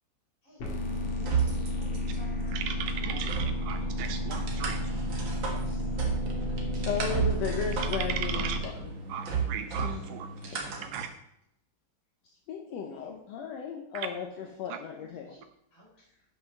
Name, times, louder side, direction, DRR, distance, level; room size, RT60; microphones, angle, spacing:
voice 1, 0.4-3.4 3.8-4.1 12.8-13.2 14.0-14.5 14.9-15.4 15.7-16.1, equal, 35° left, -4 dB, 4.6 m, -55 dB
sound 1, 0.6-8.6, left 1 dB, 60° left, 3.0 m, -32 dB
sound 2, 0.8-11.0, right 6 dB, 50° right, 1.5 m, -35 dB
voice 2, 2.5-4.9 7.8-8.6 9.1-10.3 10.9-11.1 13.9-14.1 14.7-14.8, right 9 dB, 80° right, 8 dB, 2.1 m, -36 dB
sound 3, 3.7-8.9, right 1 dB, 5° left, 2.9 m, -47 dB
voice 3, 6.9-8.9 9.8-10.0 12.5-15.3, left 7 dB, 75° left, 2 dB, 1.5 m, -35 dB
8.4 x 6.1 x 6.4 m, 0.77 s
omnidirectional pair, 4.1 m